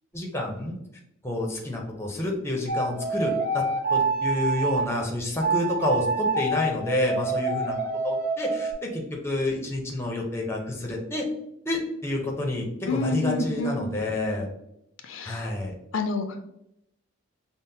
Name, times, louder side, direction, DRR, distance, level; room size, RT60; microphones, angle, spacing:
voice 1, 0.1-0.7 1.2-3.6 3.9-7.7 8.0-11.2 11.7-14.5 15.2-15.7, left 1 dB, 10° left, 0 dB, 0.6 m, -29 dB
sound 1, 2.7-4.9 5.4-8.7, right 3 dB, 40° right, 0.8 m, -26 dB
voice 2, 12.9-13.8 15.0-15.5 15.9-16.4, left 3 dB, 70° left, 6 dB, 0.4 m, -28 dB
5.5 x 2.0 x 2.7 m, 0.81 s
head